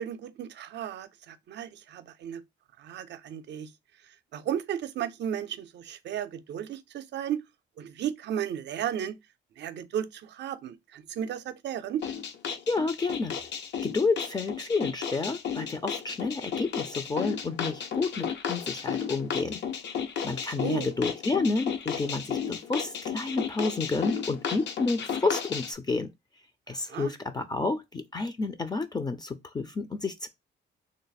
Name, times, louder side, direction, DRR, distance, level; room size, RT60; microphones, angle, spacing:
voice 1, 0.0-2.4 2.8-3.7 4.3-7.4 7.8-9.2 9.6-12.0 20.6-20.9 26.9-27.1, right 9 dB, 60° right, 0.5 m, -34 dB
sound 1, 12.0-25.7, left 7 dB, 65° left, 0.6 m, -34 dB
voice 2, 12.7-13.3 13.8-19.6 20.2-26.1 26.7-30.3, left 3 dB, 20° left, 0.4 m, -30 dB
3.1 x 2.0 x 4.0 m
cardioid pair, 90°, 20 cm